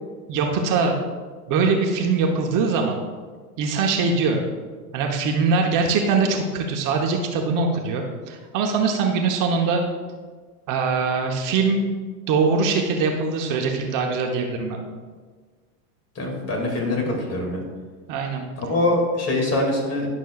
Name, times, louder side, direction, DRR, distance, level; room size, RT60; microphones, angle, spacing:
voice 1, 0.3-1.0 1.5-3.0 3.6-4.4 4.9-9.8 10.7-11.9 12.3-14.8 17.0-17.1 18.1-18.4, right 4 dB, 40° right, 2 dB, 1.1 m, -22 dB
voice 2, 16.2-17.6 18.6-20.1, left 2 dB, 30° left, 0 dB, 2.3 m, -23 dB
11.0 x 6.3 x 2.4 m, 1.5 s
hypercardioid pair, 100°, 46 cm